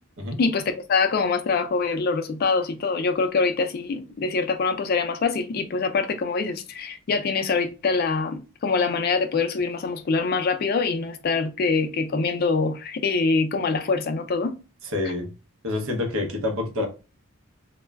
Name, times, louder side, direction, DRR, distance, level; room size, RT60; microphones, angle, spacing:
voice 1, 0.4-14.5, left 4 dB, 45° left, 0.3 m, -24 dB
voice 2, 14.9-15.3 15.6-16.9, left 2 dB, 70° right, 0.7 m, -27 dB
2.2 x 2.0 x 3.3 m
head